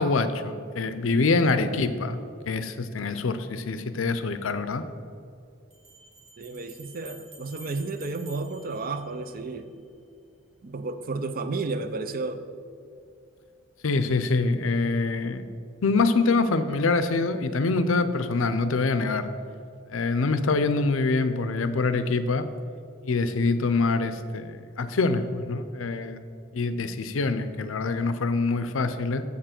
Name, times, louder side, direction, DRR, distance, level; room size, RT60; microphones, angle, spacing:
voice 1, 0.0-2.2 2.5-4.8 13.8-15.5 15.8-19.3 19.9-22.5 23.0-26.2 26.5-29.2, left 3 dB, 85° left, 11 dB, 0.6 m, -25 dB
sound 1, 5.7-9.7, right 2 dB, 75° right, 1.8 m, -50 dB
voice 2, 6.4-9.8 10.6-12.4, right 3 dB, 45° right, 10 dB, 0.5 m, -32 dB
7.3 x 6.8 x 5.9 m, 2.4 s
head